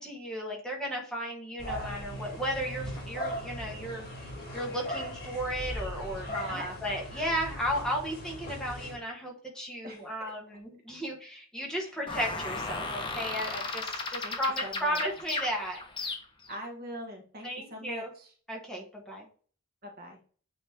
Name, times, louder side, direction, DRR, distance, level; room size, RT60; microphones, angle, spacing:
voice 1, 0.0-4.1 4.5-15.8 17.4-18.1 18.5-19.3, equal, 5° left, -3 dB, 1.5 m, -34 dB
sound 1, 1.6-8.9, equal, 50° left, 2.9 m, -39 dB
sound 2, 12.1-16.5, left 3 dB, 25° left, 1.1 m, -35 dB
voice 2, 14.6-15.0 16.5-18.3 19.8-20.2, equal, 45° right, 1 dB, 1.4 m, -42 dB
8.8 x 3.2 x 3.6 m, 0.42 s
head